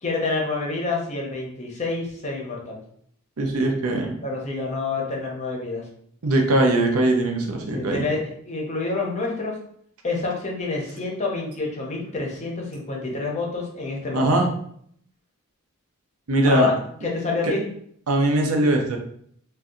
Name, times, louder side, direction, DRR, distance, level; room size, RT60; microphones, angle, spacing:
voice 1, 0.0-2.8 4.2-5.8 7.7-8.2 8.4-9.6 10.0-14.4 16.4-16.7 17.0-17.7, left 3 dB, 30° left, -1 dB, 0.7 m, -27 dB
voice 2, 3.4-4.2 6.2-8.1 14.1-14.5 16.3-16.7 17.4-17.5 18.1-19.0, right 2 dB, 75° right, 2 dB, 0.6 m, -21 dB
2.7 x 2.2 x 3.6 m, 0.66 s
head